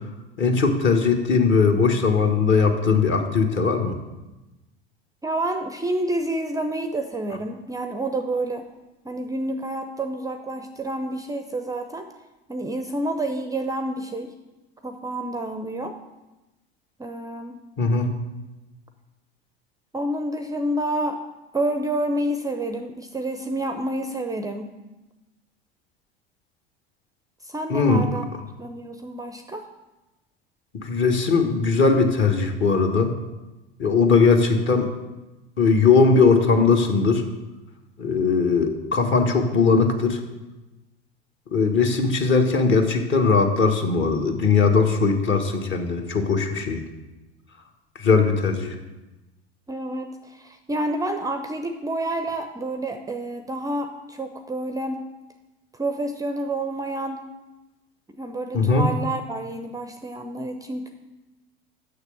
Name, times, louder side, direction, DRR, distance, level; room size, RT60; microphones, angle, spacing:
voice 1, 0.4-4.0 17.8-18.1 27.7-28.1 30.8-33.1 33.8-34.9 35.6-37.2 38.0-40.2 41.5-46.8 48.0-48.7 58.5-58.9, left 4 dB, 40° left, 4 dB, 1.4 m, -19 dB
voice 2, 5.2-8.7 9.0-12.1 12.5-14.3 14.8-16.0 17.0-17.6 19.9-21.2 21.5-24.7 27.4-28.3 28.6-29.7 49.7-55.1 55.7-57.2 58.1-60.9, right 1 dB, 10° right, 7 dB, 0.5 m, -29 dB
6.7 x 6.6 x 7.0 m, 1.1 s
figure-of-eight pair, 75°, 31 cm